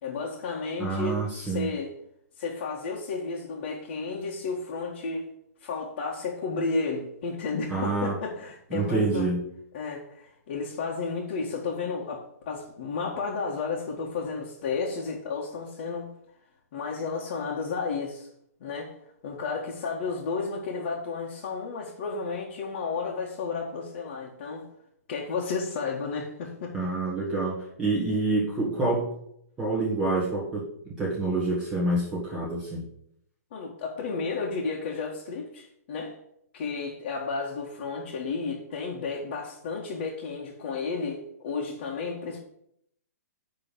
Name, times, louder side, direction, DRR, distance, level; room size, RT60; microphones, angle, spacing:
voice 1, 0.0-2.0 2.4-5.3 5.6-9.3 9.7-16.1 16.7-18.3 18.6-18.9 19.2-24.7 25.1-26.8 33.5-36.2 36.5-42.4, left 4 dB, 40° left, -4 dB, 1.7 m, -32 dB
voice 2, 0.8-1.7 7.7-8.1 8.7-9.4 26.7-29.1 29.6-32.8, right 2 dB, 10° right, -6 dB, 1.8 m, -27 dB
10.5 x 3.7 x 6.9 m, 0.73 s
hypercardioid pair, 165°, 9 cm